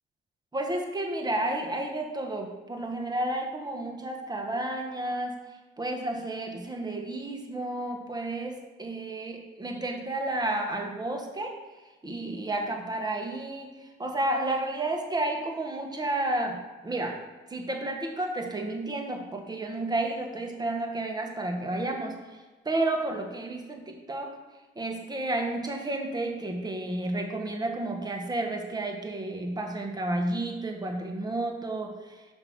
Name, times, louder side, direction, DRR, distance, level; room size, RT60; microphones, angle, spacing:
voice 1, 0.5-5.4 5.8-11.5 12.0-17.2 17.5-24.4 24.7-32.3, right 2 dB, 20° right, 3 dB, 1.3 m, -31 dB
5.7 x 5.4 x 6.1 m, 1.3 s
cardioid pair, 90°, 20 cm